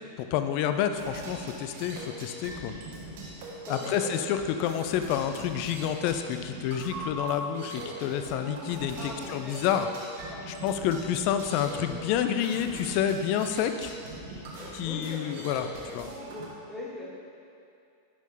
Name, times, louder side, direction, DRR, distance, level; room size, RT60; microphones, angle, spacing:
voice 1, 0.3-2.7 3.7-9.9 10.6-13.9 14.7-16.1, left 9 dB, 45° left, 8 dB, 0.5 m, -29 dB
sound 1, 1.0-16.4, right 1 dB, 55° right, 1.6 m, -41 dB
voice 2, 3.4-4.1 9.0-9.6 10.3-10.7 13.2-13.4 14.6-15.3 15.7-17.0, left 1 dB, 10° left, -6 dB, 2.0 m, -42 dB
10.5 x 6.3 x 3.5 m, 2.5 s
figure-of-eight pair, 90°, 0 cm